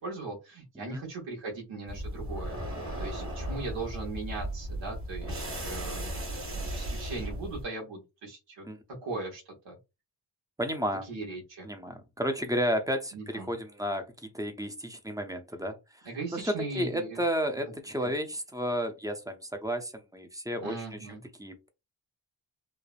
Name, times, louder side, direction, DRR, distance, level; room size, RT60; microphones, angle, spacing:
voice 1, 0.0-6.2 6.6-8.6 9.0-9.8 11.1-11.7 13.1-13.5 16.1-17.2 18.0-18.1 20.6-21.2, right 3 dB, 80° right, 1.1 m, -39 dB
sound 1, 1.9-7.7, right 1 dB, 30° right, 1.3 m, -36 dB
voice 2, 10.6-11.1 11.6-21.7, equal, 10° right, 0.5 m, -32 dB
3.2 x 2.0 x 2.4 m
cardioid pair, 70°, 44 cm